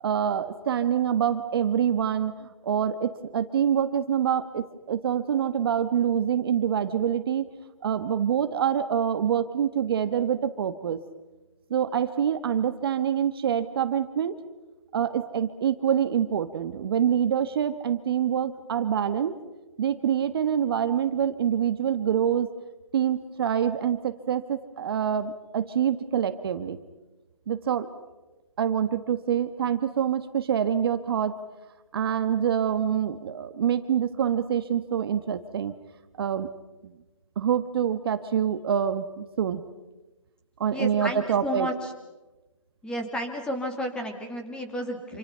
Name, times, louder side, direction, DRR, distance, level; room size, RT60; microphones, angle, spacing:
voice 1, 0.0-7.4 7.8-11.0 11.7-14.4 14.9-19.4 19.8-22.5 22.9-26.8 27.5-27.9 28.6-31.3 31.9-35.7 36.2-36.5 36.8-36.9 37.4-39.6 40.6-41.7, right 8 dB, 45° right, 10 dB, 1.3 m, -26 dB
voice 2, 40.7-41.9 42.8-45.2, equal, 5° left, 4 dB, 2.8 m, -32 dB
28.0 x 27.5 x 5.6 m, 1.1 s
hypercardioid pair, 150°, 17 cm